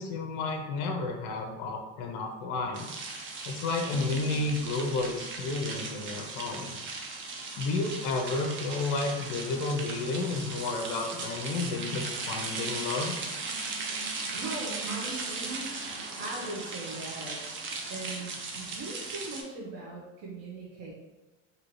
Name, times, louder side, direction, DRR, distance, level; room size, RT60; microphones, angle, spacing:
voice 1, 0.0-2.9 3.4-6.8 7.6-13.1, left 3 dB, 55° left, 3 dB, 0.5 m, -31 dB
sound 1, 2.7-19.4, right 3 dB, 35° right, 0.5 m, -37 dB
Keyboard (musical), 3.9-7.5, right 2 dB, 10° left, 1.0 m, -51 dB
voice 2, 14.3-15.7 16.2-17.5 17.9-20.9, right 2 dB, 55° right, -5 dB, 0.8 m, -39 dB
2.8 x 2.6 x 3.0 m, 1.1 s
supercardioid pair, 120°, 36 cm